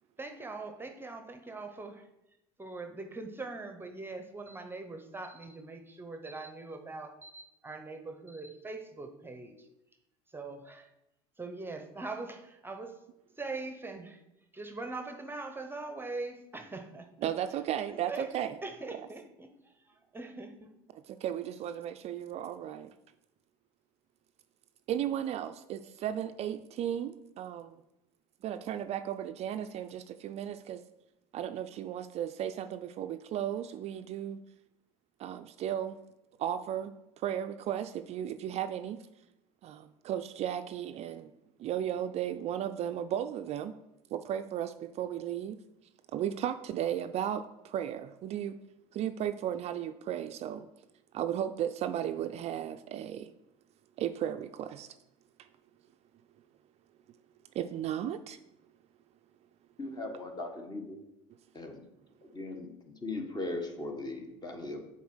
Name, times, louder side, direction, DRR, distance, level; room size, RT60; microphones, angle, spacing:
voice 1, 0.2-2.0 2.6-9.6 10.3-10.9 11.4-13.0 13.4-14.2 14.5-17.3 17.9-18.3 18.6-19.5 20.1-20.5, right 3 dB, 15° right, 7 dB, 0.8 m, -42 dB
voice 2, 17.2-18.6 18.9-19.1 20.9-22.9 24.9-27.8 28.4-30.8 31.3-34.4 35.2-36.0 36.4-39.0 39.6-41.3 41.6-43.7 44.1-45.6 46.1-48.6 48.9-50.7 51.1-53.3 54.0-55.0 57.5-58.4, right 10 dB, 45° right, 9 dB, 0.4 m, -35 dB
voice 3, 59.8-61.0 61.5-61.8 62.3-62.7 63.0-64.8, left 2 dB, 25° left, 4 dB, 1.5 m, -38 dB
7.1 x 4.2 x 6.2 m, 0.90 s
hypercardioid pair, 90°, 15 cm